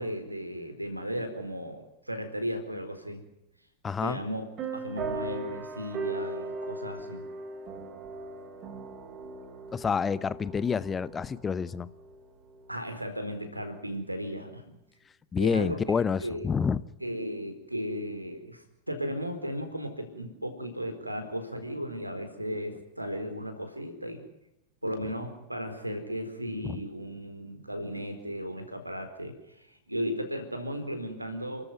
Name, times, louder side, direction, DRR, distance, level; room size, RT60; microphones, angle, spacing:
voice 1, 0.0-3.2 4.0-7.2 12.7-14.8 15.4-15.8 16.2-16.5 17.0-24.2 24.8-31.6, equal, 85° right, 4.4 m, -35 dB
voice 2, 3.8-4.2 9.7-11.9 15.3-16.8 26.6-26.8, left 6 dB, 20° left, 0.9 m, -28 dB
sound 1, 4.6-12.7, right 3 dB, 35° right, 5.2 m, -38 dB
30.0 x 14.0 x 9.5 m
figure-of-eight pair, 90°, 0 cm